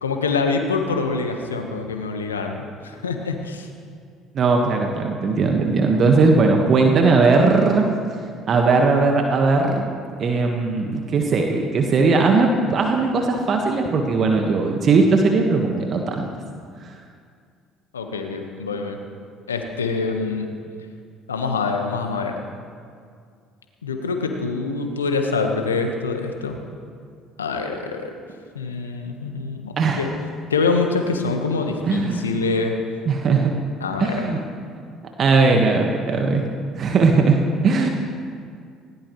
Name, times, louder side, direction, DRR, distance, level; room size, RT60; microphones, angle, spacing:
voice 1, 0.0-3.7 17.9-19.0 19.5-20.5 21.3-22.4 23.8-26.6 27.4-28.1 28.5-30.1 30.5-32.8 33.8-34.4, left 4 dB, 90° left, 4 dB, 1.4 m, -25 dB
voice 2, 4.3-7.9 8.5-9.9 10.2-16.3 29.8-30.0 31.9-32.2 33.1-33.5 34.0-34.4 35.2-36.4 36.8-37.9, right 4 dB, 45° right, 2 dB, 1.5 m, -18 dB
19.5 x 18.0 x 3.2 m, 2.2 s
hypercardioid pair, 60°, 0 cm